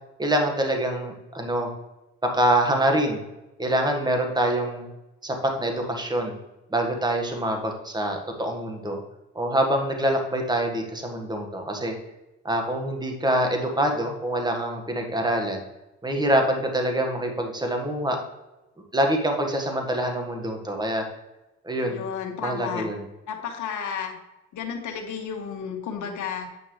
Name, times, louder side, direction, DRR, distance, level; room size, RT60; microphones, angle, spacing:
voice 1, 0.2-1.7 2.2-3.2 3.6-4.9 5.2-6.3 6.7-9.0 9.3-11.9 12.4-15.6 16.0-18.2 18.9-21.0 21.6-22.0 22.4-23.0, right 1 dB, 15° right, 3 dB, 1.5 m, -25 dB
voice 2, 21.8-22.9 23.3-24.2 24.5-26.6, left 7 dB, 75° left, 3 dB, 1.6 m, -32 dB
9.4 x 5.4 x 3.2 m, 0.98 s
cardioid pair, 90°, 30 cm